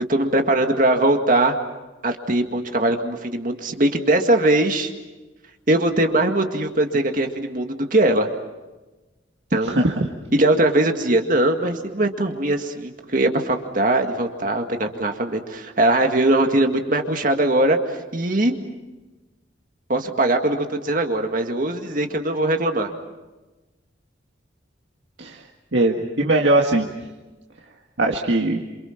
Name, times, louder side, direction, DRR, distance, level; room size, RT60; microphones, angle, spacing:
voice 1, 0.1-1.6 2.0-4.9 5.7-8.3 9.5-9.8 10.3-18.6 19.9-22.9, right 1 dB, 45° right, 4 dB, 2.0 m, -21 dB
voice 2, 9.7-10.0 25.2-25.4 25.7-26.9 28.0-28.6, right 2 dB, 70° right, 0 dB, 1.9 m, -20 dB
28.0 x 28.0 x 5.9 m, 1.1 s
head